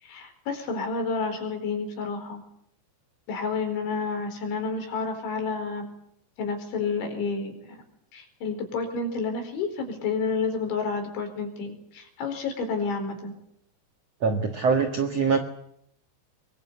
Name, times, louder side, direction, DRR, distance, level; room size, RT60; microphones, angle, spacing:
voice 1, 0.0-2.4 3.3-5.9 6.4-7.8 8.1-13.3, left 4 dB, 70° left, 5 dB, 6.9 m, -30 dB
voice 2, 14.2-15.4, right 5 dB, 70° right, 5 dB, 1.5 m, -23 dB
24.0 x 22.5 x 8.3 m, 0.72 s
omnidirectional pair, 5.7 m